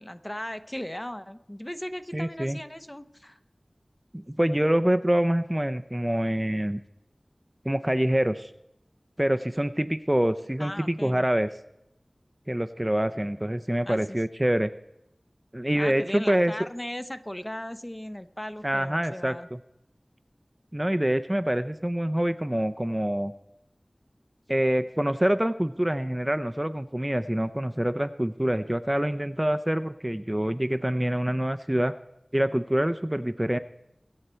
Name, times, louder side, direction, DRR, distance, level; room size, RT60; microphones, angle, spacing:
voice 1, 0.0-3.4 10.6-11.2 13.8-14.2 15.8-19.5, left 1 dB, 20° left, 10 dB, 0.8 m, -37 dB
voice 2, 2.1-2.6 4.1-6.8 7.6-8.5 9.2-11.5 12.5-14.7 15.5-16.5 18.6-19.6 20.7-23.3 24.5-31.9 32.3-33.6, right 1 dB, 20° right, 10 dB, 0.5 m, -26 dB
22.5 x 8.1 x 4.4 m, 0.84 s
wide cardioid pair, 40°, 0 cm